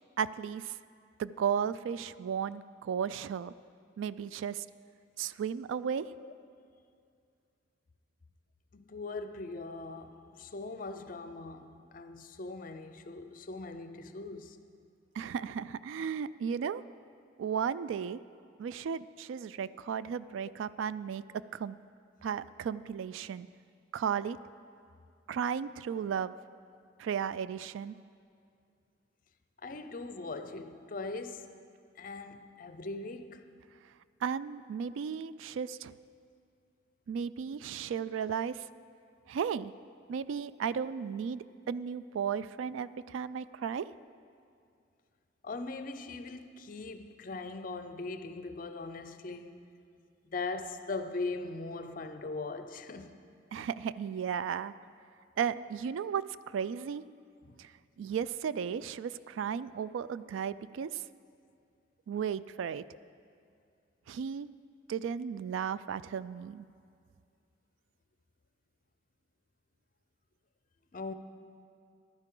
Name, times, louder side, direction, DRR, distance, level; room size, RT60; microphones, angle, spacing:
voice 1, 0.2-0.8 1.2-3.5 4.0-4.6 5.2-6.1 15.1-16.8 17.4-18.2 18.6-21.8 22.2-23.5 23.9-24.4 25.3-26.3 27.0-27.9 34.2-36.0 37.1-38.7 39.3-39.7 40.1-43.9 53.5-54.7 55.4-57.0 57.6-57.7 58.0-61.0 62.1-62.8 64.1-64.5 64.9-66.6, right 7 dB, 85° right, 0.3 m, -34 dB
voice 2, 8.7-14.6 29.6-31.5 32.0-33.4 45.4-49.6 50.3-53.2 57.4-57.6 70.9-71.1, left 3 dB, 45° left, 0.5 m, -40 dB
14.5 x 11.5 x 3.8 m
head